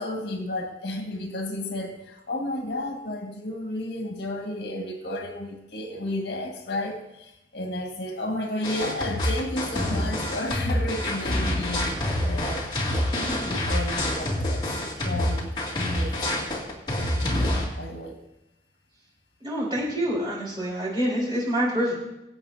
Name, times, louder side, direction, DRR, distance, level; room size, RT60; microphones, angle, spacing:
voice 1, 0.0-12.8 13.4-14.7 14.9-15.5 15.8-16.2 17.0-18.2, left 1 dB, 80° left, 2 dB, 1.7 m, -32 dB
sound 1, 8.6-17.6, left 1 dB, 25° left, 2.3 m, -27 dB
voice 2, 19.4-22.0, equal, 25° right, -7 dB, 4.7 m, -26 dB
24.0 x 8.0 x 2.7 m, 0.90 s
head